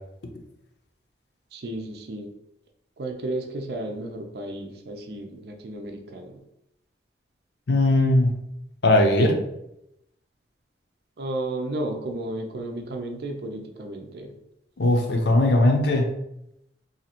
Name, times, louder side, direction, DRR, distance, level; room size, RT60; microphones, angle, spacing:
voice 1, 1.5-2.3 3.0-6.4 11.2-14.3, right 1 dB, 60° right, 3 dB, 0.5 m, -33 dB
voice 2, 7.7-8.4 8.8-9.4 14.8-16.1, left 1 dB, 70° left, 3 dB, 0.6 m, -19 dB
2.7 x 2.5 x 4.2 m, 0.81 s
head